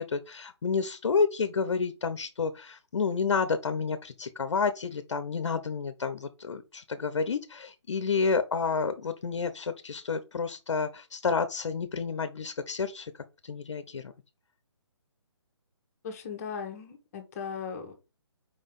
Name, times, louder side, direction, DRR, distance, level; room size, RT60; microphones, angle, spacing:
voice 1, 0.0-13.1 13.4-14.1, left 5 dB, 65° left, 1.1 m, -30 dB
voice 2, 16.0-18.0, left 6 dB, 30° left, 1.6 m, -38 dB
5.4 x 4.9 x 5.3 m
hypercardioid pair, 155°, 15 cm